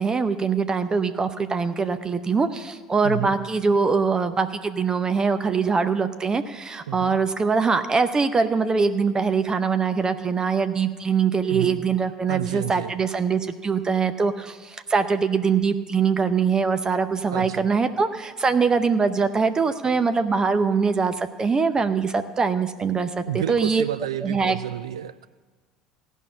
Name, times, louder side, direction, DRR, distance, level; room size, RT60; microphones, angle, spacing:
voice 1, 0.0-23.8 24.2-24.6, right 5 dB, 25° right, 10 dB, 0.7 m, -23 dB
voice 2, 3.0-3.4 6.9-7.2 11.5-11.8 12.3-12.9 17.3-17.7 23.3-25.3, right 11 dB, 80° right, 16 dB, 0.3 m, -30 dB
15.5 x 5.5 x 8.6 m, 1.4 s
hypercardioid pair, 65°, 3 cm